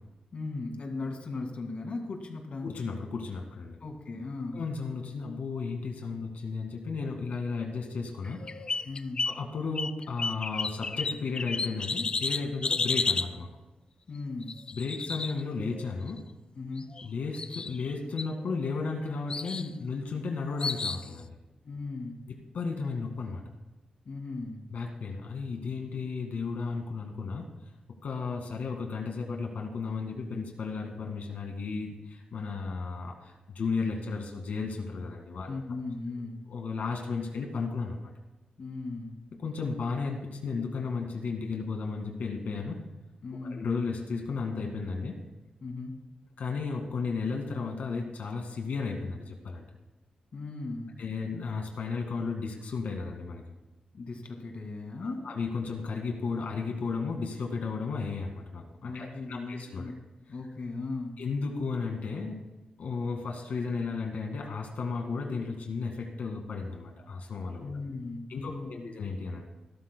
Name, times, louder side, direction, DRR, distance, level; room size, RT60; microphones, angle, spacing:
voice 1, 0.3-2.7 3.8-4.6 8.8-9.2 14.1-14.5 16.6-16.9 21.6-22.2 24.1-24.6 35.5-36.4 38.6-39.2 43.2-43.7 45.6-45.9 50.3-51.0 53.9-55.3 58.8-59.9 60.3-61.2 67.6-68.9, left 3 dB, 55° left, 3 dB, 2.1 m, -37 dB
voice 2, 2.6-3.8 4.5-8.5 9.3-13.5 14.7-16.2 17.0-21.4 22.3-23.4 24.7-27.5 28.0-35.5 36.5-38.1 39.4-42.8 43.4-45.2 46.4-49.7 51.0-53.4 55.0-59.9 61.2-62.5 62.8-67.7 68.3-69.4, left 4 dB, 90° left, 2 dB, 2.0 m, -34 dB
sound 1, 8.2-9.4 9.7-13.3 14.4-15.9 16.8-17.0 17.3-17.9 18.2-18.9 19.3-19.7 20.6-21.1, left 4 dB, 35° left, 0.4 m, -32 dB
25.5 x 13.0 x 2.3 m, 1.0 s
wide cardioid pair, 150°, 3 cm